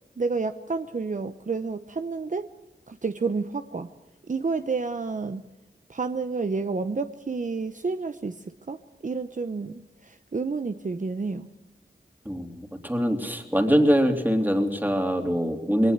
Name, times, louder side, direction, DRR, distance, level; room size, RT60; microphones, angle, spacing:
voice 1, 0.2-2.5 2.9-3.9 4.3-5.4 5.9-11.5, right 4 dB, 45° right, 9 dB, 0.9 m, -30 dB
voice 2, 12.2-15.9, equal, 10° right, 6 dB, 3.2 m, -23 dB
20.5 x 18.5 x 8.2 m, 1.1 s
cardioid pair, 45°, 18 cm